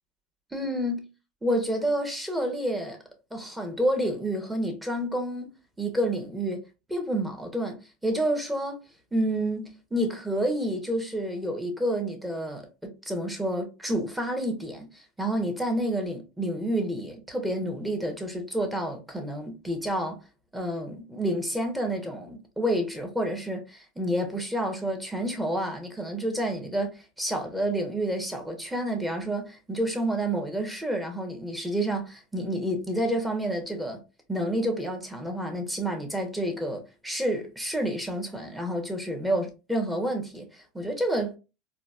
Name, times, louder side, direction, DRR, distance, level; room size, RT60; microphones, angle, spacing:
voice 1, 0.5-1.0 1.4-3.0 3.3-5.5 5.8-6.6 6.9-8.8 9.1-20.2 20.5-34.0 34.3-41.4, right 1 dB, 10° right, 1.1 m, -29 dB
3.9 x 2.4 x 2.4 m
hypercardioid pair, 85°, 0 cm